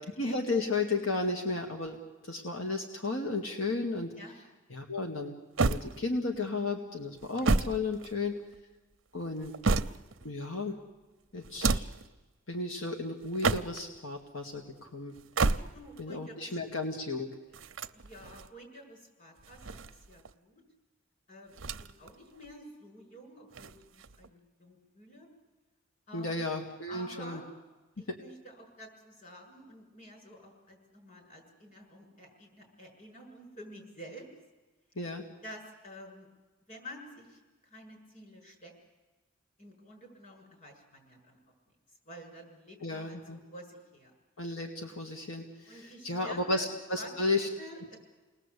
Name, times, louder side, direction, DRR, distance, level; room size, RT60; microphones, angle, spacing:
voice 1, 0.2-4.1 4.7-8.4 9.1-9.5 10.2-10.8 11.3-11.9 12.5-15.1 16.0-17.3 26.1-27.4 28.1-28.2 35.0-35.3 42.8-43.4 44.4-47.5, left 3 dB, 85° left, 3 dB, 2.1 m, -34 dB
sound 1, 5.6-6.4 7.2-8.6 9.2-10.3 11.4-12.1 13.2-14.0 15.1-16.0 17.5-18.5 19.4-20.3 21.5-22.1 22.4-22.5 23.5-24.3, right 3 dB, 80° right, 0.8 m, -31 dB
voice 2, 15.7-16.5 17.9-20.6 21.3-25.3 26.1-26.4 26.9-27.4 28.0-34.3 35.4-36.3 36.7-38.7 39.6-41.4 42.1-44.1 45.7-46.7 47.0-48.0, equal, 40° left, 3 dB, 7.3 m, -50 dB
29.0 x 20.0 x 8.4 m, 1.2 s
head